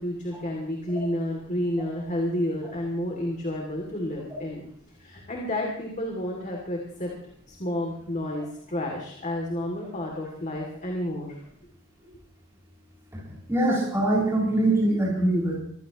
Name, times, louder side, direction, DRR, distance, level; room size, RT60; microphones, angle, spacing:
voice 1, 0.0-4.6 5.0-7.1 7.5-11.4, left 1 dB, 35° left, -1 dB, 2.8 m, -30 dB
voice 2, 13.5-15.6, right 1 dB, 15° right, -6 dB, 7.1 m, -23 dB
25.5 x 16.0 x 3.1 m, 0.67 s
head